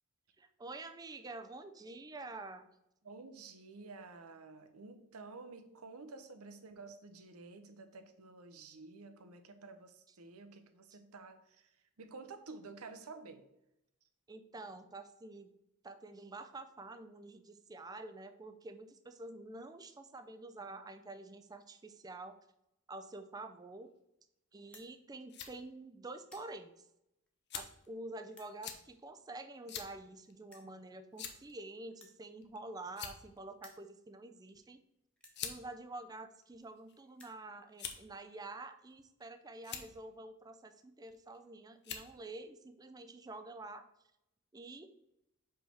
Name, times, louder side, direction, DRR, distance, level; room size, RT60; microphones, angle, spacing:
voice 1, 0.4-2.7 14.3-15.5 15.8-22.4 22.9-23.9 24.5-26.9 27.5-34.8 35.4-43.9 44.5-44.9, right 2 dB, 20° right, 9 dB, 0.4 m, -48 dB
voice 2, 3.0-13.4, right 3 dB, 85° right, 8 dB, 0.8 m, -51 dB
sound 1, 24.6-24.9 25.6-25.8 26.1-26.5 27.3-27.4 28.3-28.5 29.6-29.7 29.9-30.0 30.5-30.7 31.9-33.2 33.5-33.9 34.6-34.7 35.2-35.4 36.3-36.4 36.6-36.7 37.0-37.4, left 1 dB, 5° left, 1.0 m, -60 dB
sound 2, 25.0-25.5 26.3-26.4 27.5-27.9 28.6-28.8 29.7-29.9 30.3-30.4 31.2-31.5 32.4-32.6 32.9-33.4 34.5-34.7 35.3-35.6 36.4-37.0 37.8-38.1 38.9-39.3 39.6-39.9 41.1-41.4 41.8-42.1, left 8 dB, 50° left, 0.7 m, -44 dB
5.5 x 3.5 x 5.6 m, 0.83 s
head